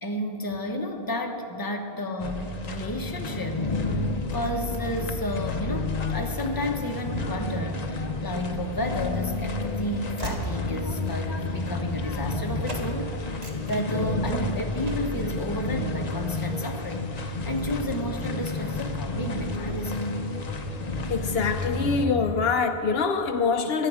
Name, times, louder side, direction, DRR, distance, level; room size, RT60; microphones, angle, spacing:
voice 1, 0.0-4.0 4.3-13.2 13.6-20.1, left 1 dB, 20° left, 3 dB, 1.1 m, -32 dB
sound 1, 2.2-22.1, left 2 dB, 45° left, 0.9 m, -30 dB
Train / Slam, 8.8-12.4 12.6-12.9 13.2-14.4 14.8-15.2, right 1 dB, 40° right, 1.6 m, -39 dB
voice 2, 21.1-23.9, left 5 dB, 75° left, 7 dB, 1.0 m, -24 dB
18.0 x 12.5 x 4.9 m, 2.9 s
omnidirectional pair, 1.0 m